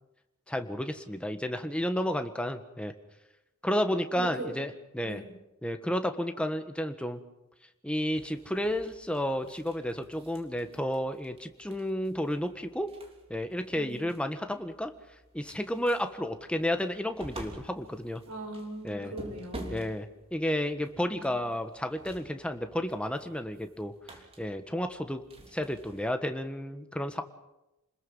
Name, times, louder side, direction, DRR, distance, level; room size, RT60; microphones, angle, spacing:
voice 1, 0.5-2.9 3.6-5.2 5.6-7.2 7.8-12.9 13.3-14.9 15.3-18.2 18.8-19.1 19.7-23.9 24.4-25.2 25.5-27.2, equal, 5° left, 7 dB, 1.4 m, -32 dB
voice 2, 4.1-4.5 5.0-5.3 13.7-14.1 18.3-19.9 21.1-21.5, right 1 dB, 75° right, 4 dB, 5.6 m, -40 dB
sound 1, 8.2-26.1, right 1 dB, 25° right, 3.3 m, -50 dB
29.5 x 21.0 x 5.6 m, 0.93 s
head